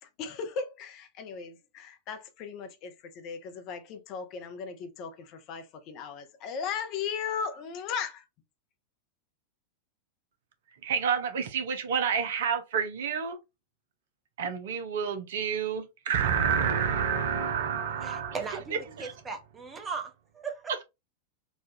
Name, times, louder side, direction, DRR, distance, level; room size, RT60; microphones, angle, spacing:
voice 1, 0.2-8.2, left 6 dB, 40° left, 0.8 m, -37 dB
voice 2, 10.8-13.4 14.4-18.4 18.7-19.1, right 7 dB, 60° right, 0.7 m, -29 dB
voice 3, 18.0-20.8, right 5 dB, 20° right, 1.0 m, -38 dB
4.1 x 2.5 x 2.7 m
figure-of-eight pair, 90°, 0 cm